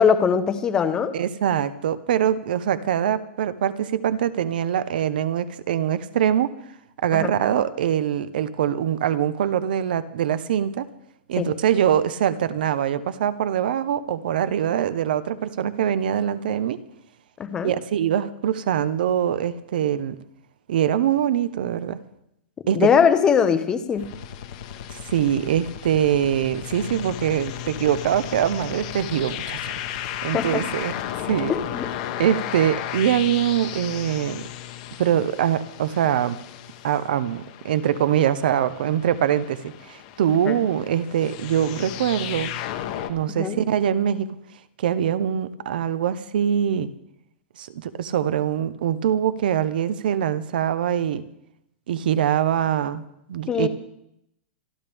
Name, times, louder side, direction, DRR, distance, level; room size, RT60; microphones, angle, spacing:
voice 1, 0.0-1.1 7.1-7.3 11.4-11.5 17.4-17.7 22.7-24.1 30.3-30.6 31.5-31.9 40.4-40.6 43.3-43.6 53.5-53.7, left 7 dB, 10° left, 10 dB, 0.8 m, -21 dB
voice 2, 1.1-6.5 7.0-10.9 11.3-16.8 17.6-20.2 20.7-22.0 22.7-22.9 25.1-29.7 30.2-30.9 31.2-31.5 32.2-34.4 35.0-36.4 36.8-42.5 43.1-44.3 44.8-46.9 47.6-51.2 51.9-53.0 53.3-53.7, right 9 dB, 55° right, 15 dB, 0.9 m, -23 dB
sound 1, 24.0-43.1, left 11 dB, 35° left, 1.1 m, -34 dB
27.0 x 12.0 x 3.5 m, 0.79 s
supercardioid pair, 180°, 6 cm